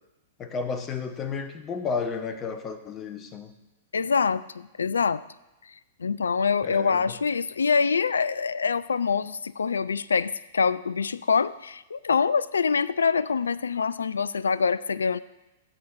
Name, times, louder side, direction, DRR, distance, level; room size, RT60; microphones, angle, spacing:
voice 1, 0.4-3.5 6.6-7.2, left 5 dB, 25° left, 9 dB, 1.0 m, -32 dB
voice 2, 3.9-5.2 6.0-15.2, left 5 dB, 70° left, 19 dB, 0.3 m, -25 dB
18.0 x 8.5 x 2.6 m, 1.0 s
figure-of-eight pair, 100°, 0 cm